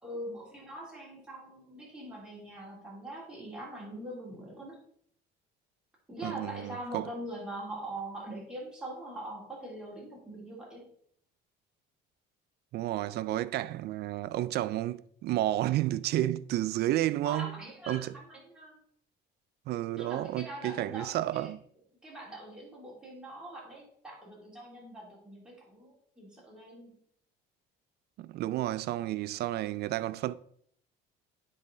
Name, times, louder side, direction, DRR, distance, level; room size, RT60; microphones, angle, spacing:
voice 1, 0.0-4.8 6.1-10.8 17.2-18.8 20.0-21.5 22.0-26.9, right 1 dB, 5° right, 2.8 m, -43 dB
voice 2, 6.2-7.1 12.7-17.5 17.9-18.1 19.7-21.6 28.2-30.3, right 14 dB, 60° right, 0.4 m, -31 dB
9.6 x 4.2 x 3.8 m
cardioid pair, 125°, 19 cm